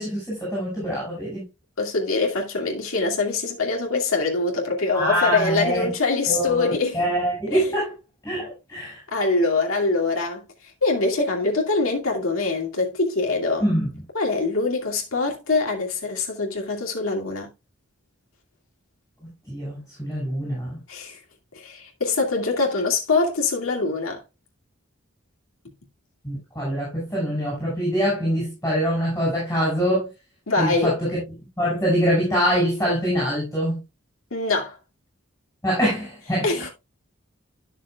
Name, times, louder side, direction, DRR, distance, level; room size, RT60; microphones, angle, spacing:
voice 1, 0.0-1.4 4.9-5.9 6.3-7.9 8.2-9.0 13.6-13.9 19.5-20.8 26.2-30.1 30.6-31.1 31.6-33.8 35.6-36.5, equal, 10° left, 6.1 m, -24 dB
voice 2, 1.8-7.0 7.5-7.7 9.1-10.4 10.8-13.7 14.1-17.5 20.9-21.2 21.5-24.2 30.5-31.0 34.3-34.8 36.4-36.7, left 3 dB, 90° left, 2.5 m, -24 dB
12.5 x 6.5 x 2.3 m
head